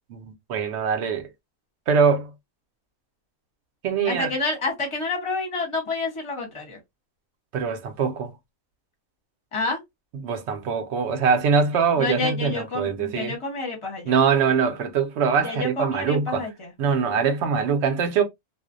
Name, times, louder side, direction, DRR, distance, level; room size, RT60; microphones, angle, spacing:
voice 1, 0.1-1.3 1.9-2.3 3.8-4.3 7.5-8.3 10.1-13.3 14.1-16.5 16.8-18.2, right 6 dB, 65° right, 0.8 m, -23 dB
voice 2, 4.0-6.8 9.5-9.8 12.0-14.1 15.4-16.7, left 3 dB, 30° left, 0.7 m, -28 dB
2.5 x 2.1 x 2.4 m
omnidirectional pair, 1.4 m